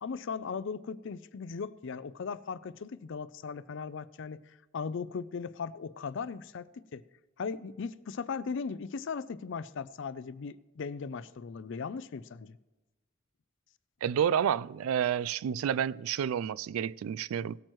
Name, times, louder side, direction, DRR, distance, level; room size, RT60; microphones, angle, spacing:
voice 1, 0.0-7.0 7.4-12.6, left 5 dB, 60° left, 0.4 m, -38 dB
voice 2, 14.0-17.6, right 8 dB, 85° right, 0.3 m, -30 dB
18.0 x 8.8 x 3.1 m
head